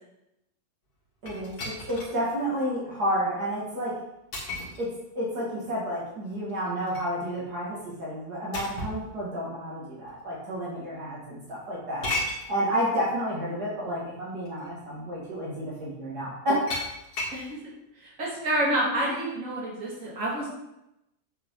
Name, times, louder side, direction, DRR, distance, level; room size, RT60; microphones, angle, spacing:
voice 1, 1.2-3.9 4.8-4.9 5.2-12.1 12.5-16.6, equal, 65° right, -6 dB, 2.7 m, -30 dB
sound 1, 1.3-2.2 2.7-2.8 4.3-4.9 6.5-7.2 8.5-9.1 10.1-10.2 12.0-12.5 13.9-14.0 14.4-14.7 16.7-17.4, left 2 dB, 60° left, 2.3 m, -34 dB
voice 2, 18.0-20.5, right 1 dB, 50° right, -5 dB, 2.7 m, -28 dB
7.5 x 7.1 x 3.8 m, 0.86 s
omnidirectional pair, 1.9 m